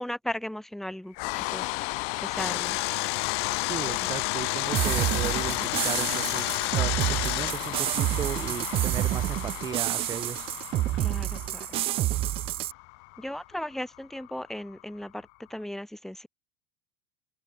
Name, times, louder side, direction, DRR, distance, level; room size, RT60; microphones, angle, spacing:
voice 1, 0.0-1.6 2.2-2.8 3.9-4.1 11.0-11.8 13.2-16.3, left 1 dB, ahead, 3.9 m, -36 dB
sound 1, 1.1-15.3, left 32 dB, 60° left, 0.8 m, -34 dB
Engine, 2.4-7.5, left 22 dB, 75° left, 1.1 m, -31 dB
voice 2, 3.6-10.5, right 8 dB, 30° right, 2.0 m, -36 dB
sound 2, 4.7-12.7, right 15 dB, 45° right, 2.2 m, -29 dB
open air
supercardioid pair, 125°, 13 cm